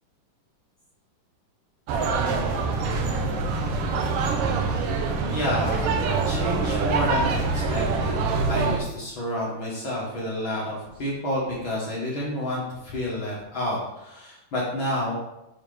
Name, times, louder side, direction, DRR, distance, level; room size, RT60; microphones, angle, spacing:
sound 1, 1.9-8.8, right 4 dB, 75° right, 2.0 m, -25 dB
voice 1, 5.3-8.2 8.5-15.2, left 1 dB, 55° left, -6 dB, 1.4 m, -30 dB
7.1 x 4.5 x 5.0 m, 0.90 s
omnidirectional pair, 4.7 m